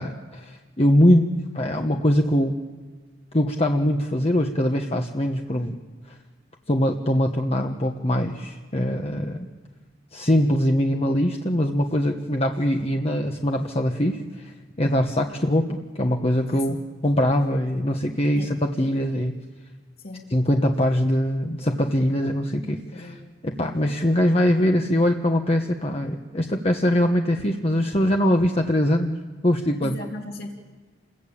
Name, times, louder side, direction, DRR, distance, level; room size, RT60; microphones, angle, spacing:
voice 1, 0.0-2.5 3.3-5.8 6.7-9.5 10.1-19.4 20.3-29.1 29.4-30.0, equal, 35° left, 3 dB, 1.3 m, -22 dB
voice 2, 16.5-16.8 18.4-18.6 20.0-20.3 22.9-23.2 29.8-30.5, left 2 dB, 55° left, 1 dB, 3.0 m, -37 dB
29.5 x 22.0 x 8.6 m, 1.3 s
head